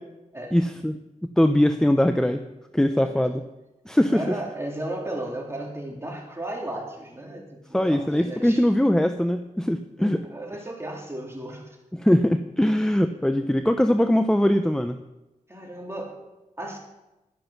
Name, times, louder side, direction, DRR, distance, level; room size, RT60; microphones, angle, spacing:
voice 1, 0.5-1.0 1.4-2.4 2.7-3.4 3.9-4.4 7.7-10.2 11.9-15.0, left 1 dB, 5° left, 8 dB, 0.7 m, -21 dB
voice 2, 4.1-8.6 10.0-11.7 15.5-16.2 16.6-16.8, right 1 dB, 20° right, -1 dB, 3.8 m, -35 dB
11.0 x 10.5 x 6.0 m, 0.99 s
cardioid pair, 60°, 14 cm